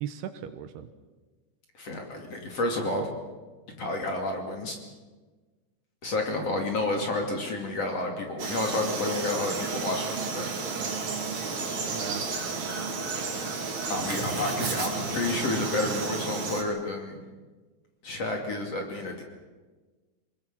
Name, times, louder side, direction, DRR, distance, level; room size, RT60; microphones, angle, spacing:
voice 1, 0.0-0.9 6.0-6.1 11.9-12.3, right 10 dB, 75° right, 10 dB, 2.8 m, -37 dB
voice 2, 1.8-3.1 3.8-4.8 6.0-10.5 13.9-17.2 18.0-19.2, left 2 dB, 40° left, 2 dB, 3.2 m, -30 dB
Frog, 8.4-16.6, right 4 dB, 45° right, 3.5 m, -32 dB
24.5 x 20.5 x 7.4 m, 1.3 s
omnidirectional pair, 5.0 m